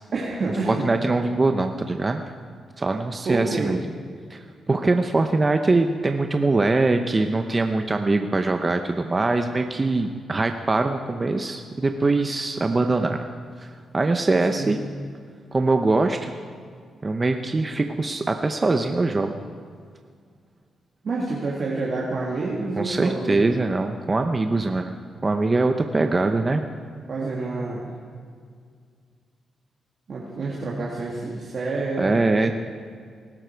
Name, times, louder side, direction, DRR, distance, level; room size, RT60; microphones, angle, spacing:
voice 1, 0.1-1.0 3.3-3.8 14.5-14.8 21.0-23.5 27.1-27.9 30.1-32.2, right 3 dB, 55° right, -4 dB, 2.2 m, -28 dB
voice 2, 0.6-2.2 2.8-3.8 4.3-4.4 4.7-13.2 13.6-14.8 15.5-16.3 17.0-19.4 22.8-26.6 32.0-32.5, right 3 dB, 30° right, 6 dB, 0.8 m, -22 dB
19.5 x 12.0 x 4.6 m, 2.1 s
cardioid pair, 75°, 0 cm